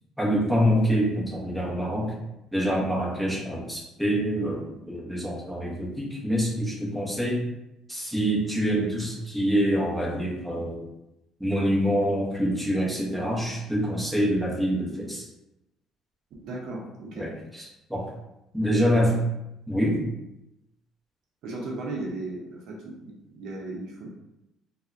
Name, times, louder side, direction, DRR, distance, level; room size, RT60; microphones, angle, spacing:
voice 1, 0.2-2.2 2.5-7.4 7.9-10.8 11.4-15.3 17.1-18.1 18.5-19.2 19.7-20.0, equal, ahead, -5 dB, 0.7 m, -26 dB
voice 2, 16.4-17.3 18.7-19.0 21.4-24.1, right 2 dB, 65° right, -1 dB, 0.6 m, -36 dB
3.4 x 2.1 x 2.5 m, 0.90 s
cardioid pair, 135°, 0 cm